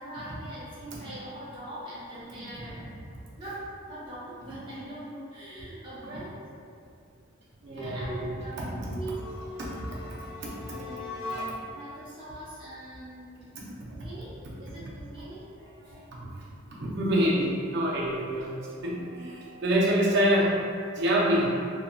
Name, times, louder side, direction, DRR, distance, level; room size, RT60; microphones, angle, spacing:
voice 1, 0.0-2.9 3.3-6.3 7.7-9.2 10.7-13.6 13.9-14.3 14.6-16.1 18.9-19.3, right 1 dB, 25° right, -11 dB, 0.8 m, -42 dB
voice 2, 7.6-9.0 9.6-10.6 15.9-16.5 16.8-20.5 20.9-21.5, equal, 55° right, -6 dB, 0.6 m, -27 dB
sound 1, 9.1-11.9, left 2 dB, 25° left, 0.7 m, -39 dB
2.8 x 2.6 x 2.2 m, 2.4 s
head